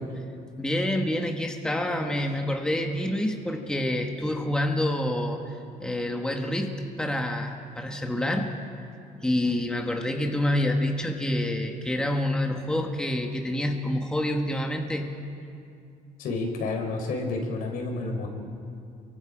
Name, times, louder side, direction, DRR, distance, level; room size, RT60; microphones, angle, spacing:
voice 1, 0.6-5.4 5.8-6.7 7.0-8.5 9.2-15.1, left 1 dB, 5° left, 2 dB, 1.5 m, -27 dB
voice 2, 16.2-18.3, left 3 dB, 80° left, 3 dB, 4.4 m, -30 dB
29.5 x 23.5 x 5.2 m, 2.4 s
cardioid pair, 150°, 15 cm